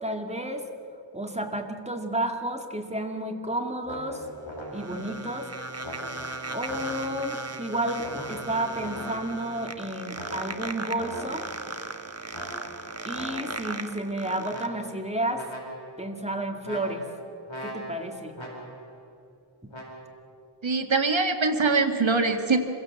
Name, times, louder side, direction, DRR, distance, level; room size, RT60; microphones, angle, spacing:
voice 1, 0.0-0.6 1.1-4.2 4.7-5.5 6.5-11.5 13.1-15.5 16.0-17.0 17.6-18.3, right 1 dB, 15° right, 4 dB, 2.4 m, -31 dB
sound 1, 3.8-5.1 5.8-7.3 8.0-9.5 10.1-11.7 12.3-13.7 14.5-15.1 15.3-16.1 16.6-18.9 19.7-20.0, equal, 70° left, 5.0 m, -40 dB
sound 2, 4.2-14.7, right 2 dB, 30° right, 1.4 m, -37 dB
voice 2, 20.6-22.6, right 4 dB, 70° right, 6 dB, 1.9 m, -23 dB
26.0 x 16.0 x 7.6 m, 2.5 s
wide cardioid pair, 45°, 47 cm